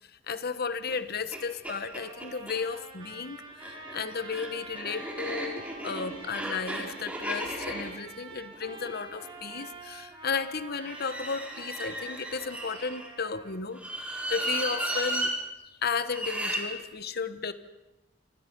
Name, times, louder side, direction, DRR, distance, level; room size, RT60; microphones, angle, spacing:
voice 1, 0.3-15.3 15.8-17.5, left 5 dB, 55° left, 12 dB, 1.2 m, -34 dB
sound 1, 0.9-1.0 1.3-1.4 1.6-2.6 3.5-9.7 10.8-13.1 13.7-15.3 16.1-16.6, right 1 dB, 5° right, 4.8 m, -35 dB
Trumpet, 2.0-13.6, right 2 dB, 30° right, 6.0 m, -47 dB
27.5 x 24.5 x 5.4 m, 1.1 s
head